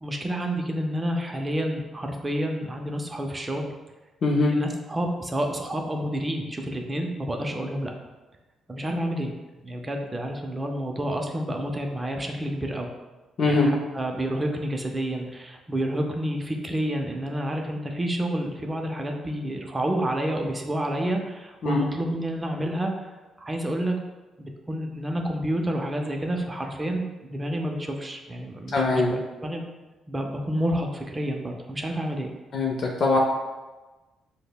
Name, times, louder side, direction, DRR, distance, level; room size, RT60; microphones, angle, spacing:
voice 1, 0.0-3.7 4.5-7.9 8.7-9.3 9.6-12.9 13.5-22.9 23.4-24.0 24.4-29.6 30.1-32.3, right 1 dB, 20° right, 2 dB, 0.4 m, -29 dB
voice 2, 4.2-4.6 13.4-13.7 21.6-21.8 28.7-29.1 32.5-33.2, left 3 dB, 55° left, -1 dB, 0.5 m, -22 dB
5.1 x 2.0 x 2.2 m, 1.2 s
cardioid pair, 90°, 0 cm